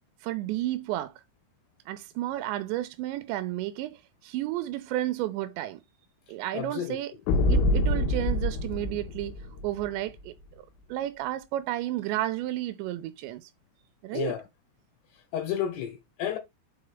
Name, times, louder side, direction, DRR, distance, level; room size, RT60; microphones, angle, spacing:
voice 1, 0.2-1.1 1.9-5.8 6.3-7.1 7.5-9.3 9.6-10.3 10.9-13.5 14.0-14.4, right 14 dB, 90° right, 2.9 m, -32 dB
voice 2, 6.5-7.0 14.1-14.4 15.3-16.4, left 10 dB, 75° left, 2.9 m, -31 dB
sound 1, 7.3-9.9, left 1 dB, 90° left, 3.5 m, -25 dB
6.8 x 4.9 x 3.2 m
omnidirectional pair, 5.2 m